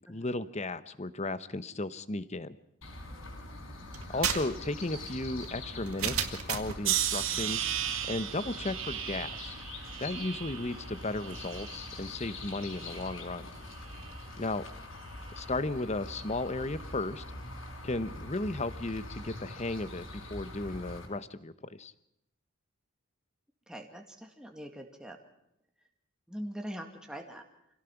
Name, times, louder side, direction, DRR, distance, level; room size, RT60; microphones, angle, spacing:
voice 1, 0.1-2.6 4.1-7.6 8.1-9.6 10.0-13.5 14.4-14.7 15.3-17.2 17.8-21.9, left 2 dB, 30° left, 14 dB, 0.9 m, -35 dB
sound 1, 2.8-21.1, left 2 dB, 65° left, 5.5 m, -44 dB
sound 2, 3.9-6.8, right 8 dB, 90° right, 2.0 m, -34 dB
sound 3, 6.8-12.0 12.4-13.1 13.9-14.2, right 11 dB, 65° right, 1.8 m, -35 dB
voice 2, 23.7-25.2 26.3-27.4, equal, 5° right, 2 dB, 2.0 m, -42 dB
26.0 x 17.5 x 6.0 m, 0.79 s
head